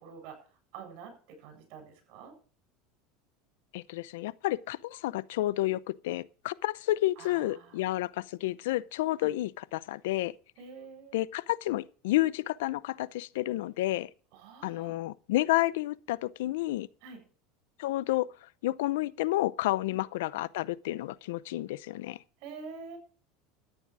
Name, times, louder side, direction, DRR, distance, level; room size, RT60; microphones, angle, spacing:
voice 1, 0.0-2.3 7.2-7.9 9.2-9.3 10.6-11.2 14.3-15.0 17.0-17.2 19.9-20.0 22.4-23.0, right 5 dB, 65° right, 7.8 m, -47 dB
voice 2, 3.7-10.3 11.1-14.1 14.6-16.9 17.8-18.3 18.6-22.2, left 16 dB, 80° left, 0.6 m, -30 dB
13.5 x 10.0 x 4.8 m
supercardioid pair, 125°, 0 cm